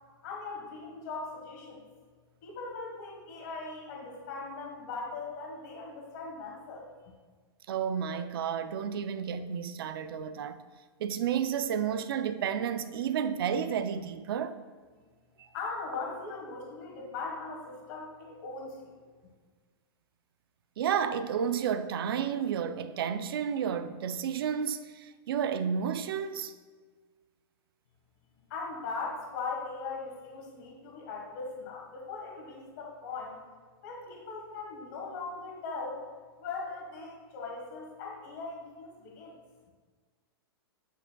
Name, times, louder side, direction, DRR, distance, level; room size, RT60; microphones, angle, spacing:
voice 1, 0.2-1.8 2.4-6.9 15.5-19.0 28.5-33.4 33.8-36.0 36.4-39.4, left 4 dB, 45° left, 1.4 m, -39 dB
voice 2, 7.7-10.6 11.0-14.6 15.4-15.5 20.8-26.5, right 8 dB, 65° right, 0.4 m, -31 dB
8.6 x 5.3 x 2.2 m
hypercardioid pair, 160°, 13 cm